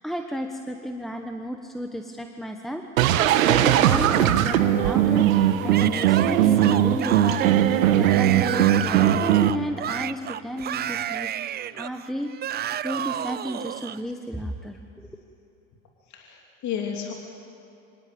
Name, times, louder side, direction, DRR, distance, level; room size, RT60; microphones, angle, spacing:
voice 1, 0.0-2.8 3.5-15.1, equal, ahead, 4 dB, 1.1 m, -33 dB
sound 1, 3.0-9.5, right 11 dB, 90° right, 1.4 m, -19 dB
Yell / Screaming, 5.7-14.0, right 11 dB, 25° right, 0.5 m, -31 dB
voice 2, 16.1-17.1, left 8 dB, 45° left, 1 dB, 3.0 m, -32 dB
25.5 x 19.0 x 8.7 m, 2.8 s
supercardioid pair, 110°, 40 cm